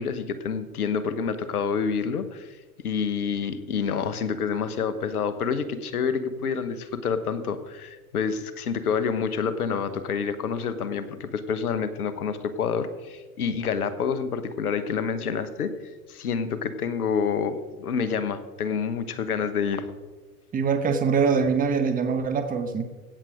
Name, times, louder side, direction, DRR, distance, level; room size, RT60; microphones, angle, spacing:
voice 1, 0.0-2.6 2.8-15.7 16.1-19.8, left 6 dB, 75° left, 13 dB, 1.2 m, -28 dB
voice 2, 20.5-22.9, right 5 dB, 20° right, 8 dB, 1.2 m, -23 dB
16.5 x 7.6 x 5.1 m, 1.3 s
hypercardioid pair, 95°, 44 cm